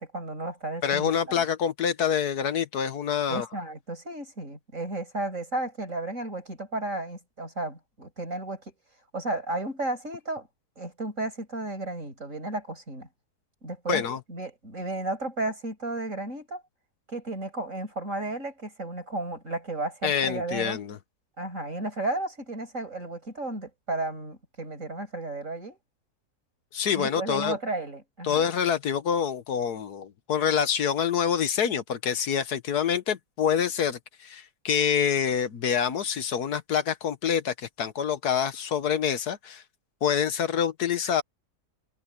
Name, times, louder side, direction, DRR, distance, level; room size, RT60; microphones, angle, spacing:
voice 1, 0.0-1.4 3.3-8.6 9.1-10.5 10.8-13.1 13.6-14.0 14.3-16.6 17.1-20.8 21.4-25.8 26.9-28.4, right 2 dB, 50° right, 7.7 m, -33 dB
voice 2, 0.8-3.5 13.9-14.2 20.0-21.0 26.7-27.6 28.2-39.6 40.0-41.2, left 8 dB, 80° left, 1.7 m, -26 dB
omnidirectional pair, 1.7 m